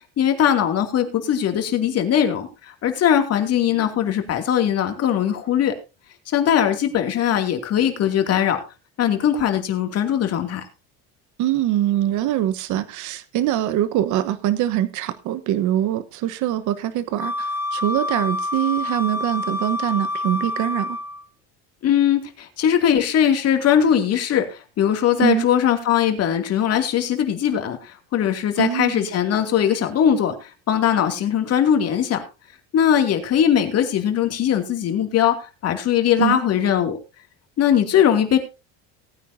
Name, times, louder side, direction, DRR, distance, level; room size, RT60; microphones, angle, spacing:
voice 1, 0.2-5.7 6.3-8.6 9.0-10.6 21.8-32.2 32.7-37.0 37.6-38.4, left 9 dB, 45° left, 2.6 m, -20 dB
voice 2, 11.4-21.0 25.2-25.5 28.6-29.1 36.2-36.4, right 13 dB, 60° right, 1.3 m, -23 dB
Wind instrument woodwind instrument, 17.2-21.2, left 2 dB, 5° right, 1.1 m, -27 dB
18.5 x 9.3 x 2.8 m
cardioid pair, 125°, 34 cm